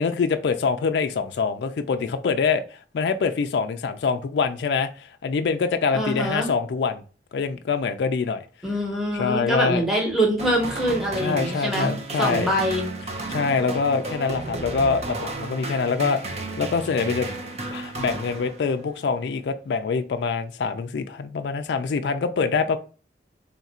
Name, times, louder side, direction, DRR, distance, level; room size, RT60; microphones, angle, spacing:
voice 1, 0.0-7.0 7.3-8.4 9.1-9.8 11.2-12.5 13.3-17.3 17.6-22.8, left 5 dB, 75° left, 0.3 m, -25 dB
voice 2, 5.9-6.5 8.6-12.8, equal, ahead, 1.0 m, -24 dB
sound 1, 10.4-19.0, right 2 dB, 35° right, 0.5 m, -33 dB
3.6 x 2.4 x 4.1 m
head